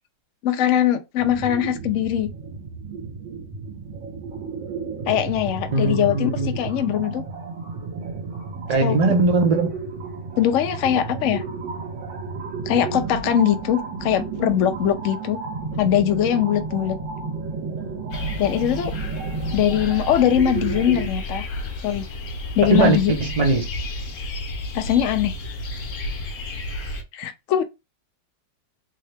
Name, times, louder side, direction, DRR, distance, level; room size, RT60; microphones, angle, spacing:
voice 1, 0.4-2.3 5.1-7.2 8.8-9.0 10.4-11.4 12.7-15.4 15.8-17.0 18.4-18.9 19.5-21.5 21.8-22.1 22.6-23.1 24.7-25.4 27.1-27.6, left 10 dB, 75° left, 0.7 m, -21 dB
sound 1, 1.2-21.1, right 4 dB, 85° right, 1.8 m, -32 dB
voice 2, 5.7-6.5 8.7-9.7 22.7-23.7, right 3 dB, 45° right, 0.5 m, -20 dB
sound 2, 18.1-27.0, left 1 dB, 55° left, 1.0 m, -31 dB
3.7 x 2.8 x 3.2 m
omnidirectional pair, 1.9 m